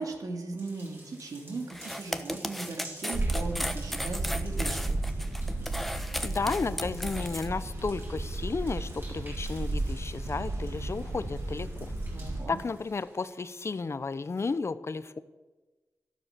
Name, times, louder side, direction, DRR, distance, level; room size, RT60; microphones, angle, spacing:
voice 1, 0.0-4.9 12.1-12.6, right 3 dB, 80° right, 3 dB, 2.7 m, -38 dB
sound 1, 0.6-13.8, right 1 dB, 40° right, 6.1 m, -53 dB
sound 2, 1.7-7.5, equal, ahead, 1.1 m, -35 dB
sound 3, 3.1-12.4, right 2 dB, 55° right, 3.0 m, -34 dB
voice 2, 6.2-11.9 12.5-15.2, left 4 dB, 50° left, 14 dB, 0.8 m, -33 dB
13.0 x 12.0 x 6.8 m, 1.2 s
wide cardioid pair, 75°, 6 cm